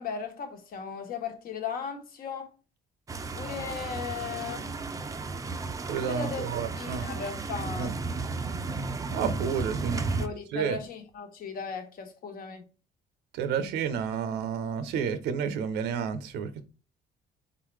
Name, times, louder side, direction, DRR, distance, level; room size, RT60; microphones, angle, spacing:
voice 1, 0.0-2.5 3.4-4.7 6.0-6.4 6.8-8.0 10.0-12.7, left 6 dB, 60° left, 1.3 m, -37 dB
sound 1, 3.1-10.3, right 3 dB, 20° right, 0.5 m, -34 dB
voice 2, 5.9-7.1 7.8-7.9 9.1-10.0 10.5-10.8 13.3-16.6, right 7 dB, 85° right, 0.7 m, -30 dB
4.2 x 3.8 x 3.2 m
cardioid pair, 110°, 17 cm